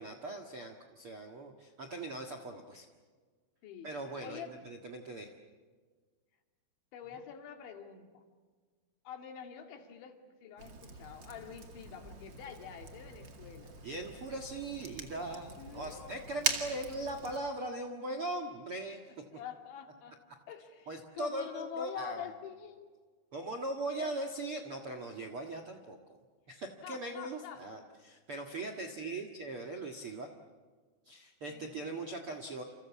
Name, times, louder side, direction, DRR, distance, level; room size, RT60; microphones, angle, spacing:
voice 1, 0.0-2.9 3.8-5.3 13.8-19.0 20.9-22.3 23.3-26.2 26.5-30.3 31.0-32.6, right 2 dB, 55° right, 5 dB, 1.5 m, -40 dB
voice 2, 4.2-4.7 6.9-8.2 9.0-13.7 15.6-16.3 19.3-20.2 20.5-22.9 23.9-24.2 26.8-27.8 31.5-32.3, left 8 dB, 80° left, 4 dB, 4.6 m, -46 dB
Fire, 10.6-17.4, right 4 dB, 40° right, 1.8 m, -41 dB
29.0 x 28.0 x 7.3 m, 1.5 s
omnidirectional pair, 5.2 m